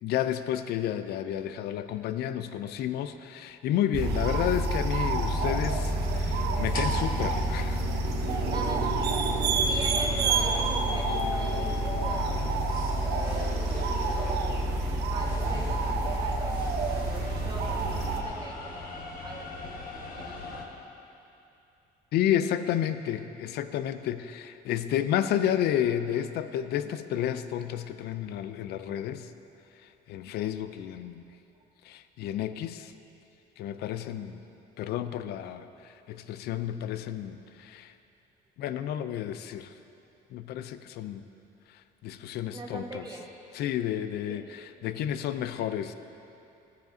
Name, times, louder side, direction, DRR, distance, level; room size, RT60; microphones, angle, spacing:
voice 1, 0.0-7.9 22.1-29.3 30.1-31.2 31.8-32.9 33.6-34.4 34.8-37.9 38.6-39.7 40.3-41.2 42.0-43.1 43.5-45.9, left 10 dB, 70° left, 11 dB, 0.5 m, -31 dB
sound 1, 3.9-18.2, right 2 dB, 75° right, 0.9 m, -28 dB
sound 2, 5.1-20.6, left 4 dB, 55° left, 1.1 m, -40 dB
voice 2, 8.3-8.9 9.6-13.5 14.1-14.7 15.0-19.7 20.0-20.6 42.5-43.3 44.3-44.5, right 2 dB, 25° right, -1 dB, 1.4 m, -42 dB
14.0 x 9.2 x 2.7 m, 2.8 s
cardioid pair, 110°, 17 cm